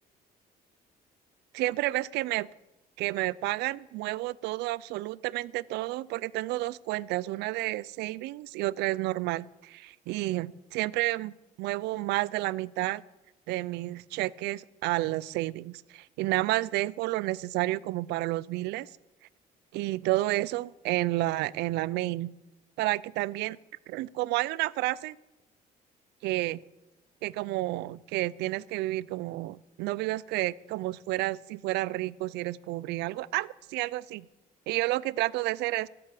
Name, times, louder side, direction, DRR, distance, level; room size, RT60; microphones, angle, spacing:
voice 1, 1.5-2.5 3.0-13.0 13.5-18.9 19.7-22.3 22.8-23.6 23.9-25.2 26.2-26.6 27.2-34.3 34.7-35.9, right 18 dB, 85° right, 22 dB, 0.4 m, -30 dB
15.5 x 7.8 x 7.5 m, 1.0 s
cardioid pair, 110°, 17 cm